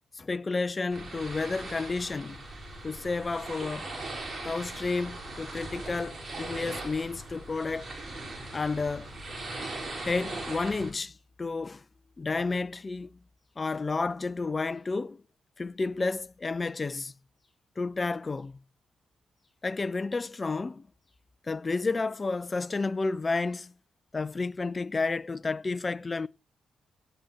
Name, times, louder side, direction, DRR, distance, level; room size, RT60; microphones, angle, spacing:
voice 1, 0.1-2.4 2.8-3.9 4.4-7.9 8.5-9.1 10.0-11.1 11.4-11.8 12.2-13.2 13.6-15.2 15.6-17.1 17.8-18.6 19.6-20.9 21.5-23.7 24.1-26.3, left 3 dB, 35° left, 0.7 m, -31 dB
sound 1, 0.9-10.9, right 2 dB, 45° right, 5.8 m, -39 dB
17.0 x 8.0 x 4.4 m
hypercardioid pair, 45°, 0 cm